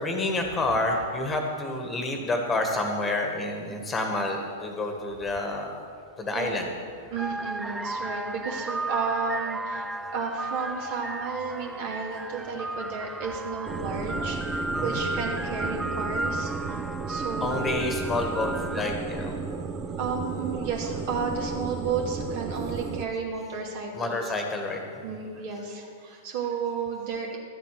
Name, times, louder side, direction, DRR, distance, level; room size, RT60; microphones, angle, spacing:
voice 1, 0.0-5.7 6.2-6.7 14.7-15.1 17.4-19.4 23.9-25.2, left 2 dB, 20° left, 3 dB, 1.6 m, -29 dB
sound 1, 6.5-6.7 7.1-19.2, right 2 dB, 10° right, 0.3 m, -34 dB
voice 2, 7.1-17.8 20.0-24.2 25.0-27.4, right 5 dB, 50° right, 0 dB, 2.3 m, -32 dB
sound 2, 13.7-23.0, right 4 dB, 25° right, 0.8 m, -34 dB
12.5 x 7.6 x 6.6 m, 2.4 s
hypercardioid pair, 105°, 0 cm